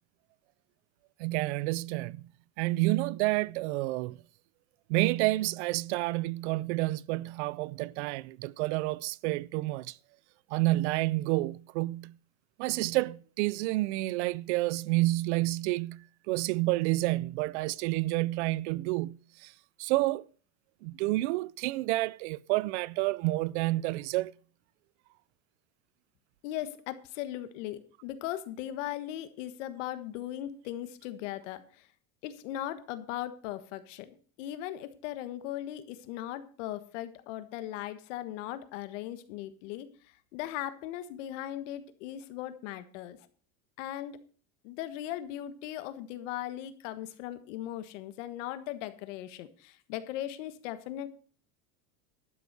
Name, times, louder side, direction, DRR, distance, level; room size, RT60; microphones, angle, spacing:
voice 1, 1.2-2.3 2.6-4.2 4.9-10.0 10.5-12.2 12.6-19.5 19.8-20.3 20.8-24.3, right 19 dB, 60° right, 0.5 m, -29 dB
voice 2, 26.4-31.9 32.2-39.9 40.3-43.2 43.8-44.2 44.6-51.1, left 13 dB, 65° left, 1.5 m, -38 dB
12.0 x 7.0 x 6.7 m
supercardioid pair, 155°, 40 cm